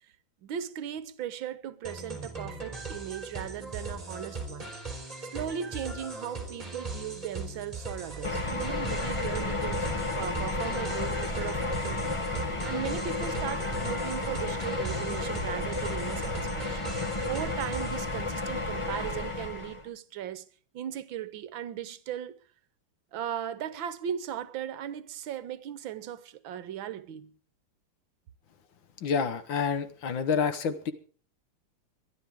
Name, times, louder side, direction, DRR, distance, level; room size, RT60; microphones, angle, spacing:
voice 1, 0.4-4.7 5.3-20.5 20.7-22.4 23.1-27.3, right 10 dB, 70° right, 1.5 m, -37 dB
sound 1, 1.8-18.1, right 3 dB, 15° right, 3.2 m, -39 dB
sound 2, 8.2-19.8, left 2 dB, 25° left, 0.7 m, -32 dB
voice 2, 29.0-30.9, left 6 dB, 65° left, 1.8 m, -28 dB
23.0 x 11.5 x 3.6 m
omnidirectional pair, 2.4 m